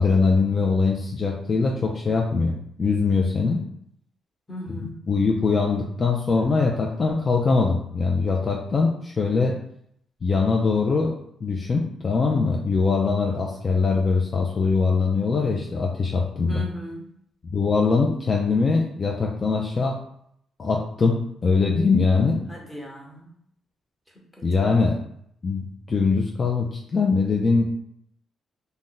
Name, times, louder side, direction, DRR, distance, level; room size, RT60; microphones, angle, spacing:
voice 1, 0.0-3.6 5.1-9.5 10.2-11.1 11.4-16.6 17.5-20.0 20.6-22.4 24.4-25.0 25.4-27.6, left 4 dB, 35° left, 0 dB, 0.3 m, -22 dB
voice 2, 4.5-5.0 16.5-17.1 22.5-23.3 24.4-24.5, equal, 10° left, -2 dB, 1.0 m, -37 dB
2.5 x 2.1 x 3.8 m, 0.71 s
cardioid pair, 90°, 0 cm